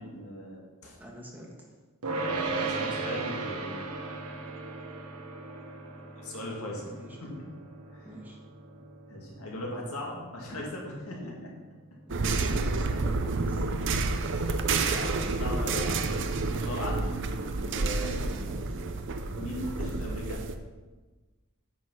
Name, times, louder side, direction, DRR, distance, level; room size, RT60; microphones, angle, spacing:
voice 1, 0.0-1.0 2.1-3.9 6.2-6.9 7.2-7.5 7.9-8.1 9.1-11.5 14.1-14.4 14.7-17.0 17.7-18.4 19.4-20.4, left 1 dB, 70° left, -2 dB, 2.5 m, -38 dB
voice 2, 1.0-1.7 6.8-7.3 8.0-8.4 12.1-14.0 17.9-19.0 19.8-19.9, equal, 10° right, -2 dB, 1.7 m, -47 dB
sound 1, 2.0-13.3, right 3 dB, 80° right, 1.3 m, -38 dB
sound 2, 12.1-20.5, right 3 dB, 55° right, 0.7 m, -29 dB
9.3 x 6.3 x 5.8 m, 1.3 s
head